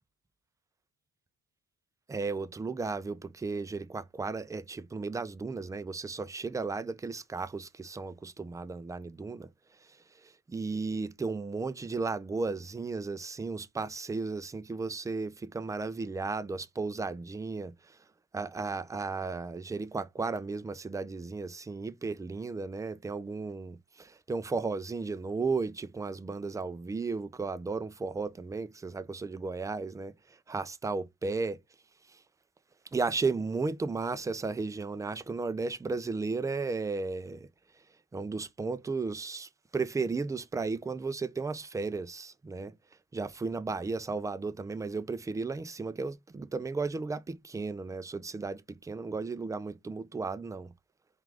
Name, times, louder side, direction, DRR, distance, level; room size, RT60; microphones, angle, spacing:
voice 1, 2.1-9.5 10.5-17.7 18.3-30.1 30.5-31.6 32.9-37.5 38.1-42.7 43.1-50.7, right 4 dB, 10° right, 0.3 m, -34 dB
4.7 x 2.5 x 3.3 m
cardioid pair, 90°, 30 cm